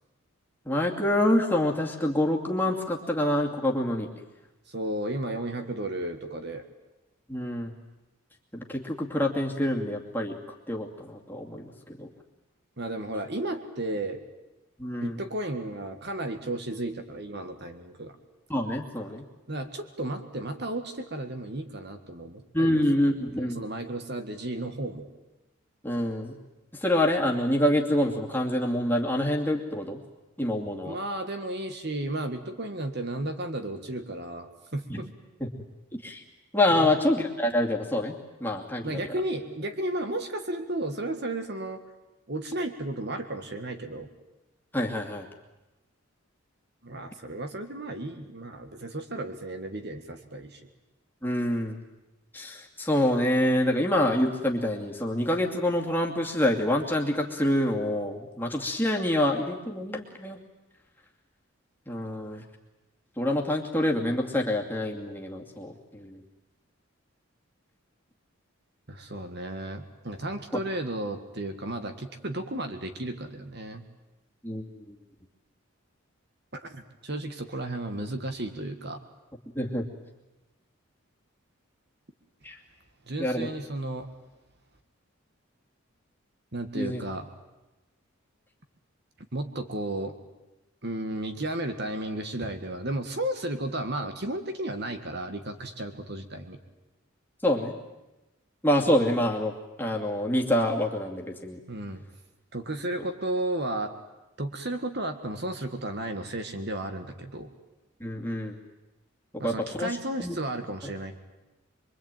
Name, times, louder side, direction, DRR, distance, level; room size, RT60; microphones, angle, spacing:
voice 1, 0.7-4.1 7.3-7.7 8.5-10.3 10.7-11.7 12.0-12.1 14.8-15.2 18.5-19.2 22.5-23.6 25.8-26.4 26.7-30.0 30.4-31.0 34.9-35.0 35.4-35.5 35.9-36.2 36.5-39.0 44.7-45.3 51.2-51.8 52.3-60.4 61.9-62.4 63.2-66.2 74.4-74.9 79.5-79.8 82.4-82.6 83.2-83.5 86.7-87.0 97.4-97.7 98.6-99.5 99.8-101.6 108.0-108.6 109.4-110.4, left 1 dB, 10° left, 0 dB, 2.5 m, -26 dB
voice 2, 4.7-6.6 12.8-14.2 15.0-18.2 19.5-25.1 30.8-35.1 36.7-36.9 38.8-41.8 42.3-44.1 46.8-50.6 68.9-73.8 76.6-79.0 83.1-84.1 86.5-87.3 89.3-90.1 90.8-96.6 101.7-102.0 102.5-103.9 104.4-107.5 109.4-111.1, right 1 dB, 50° right, 7 dB, 1.8 m, -33 dB
24.5 x 24.0 x 9.2 m, 1.0 s
head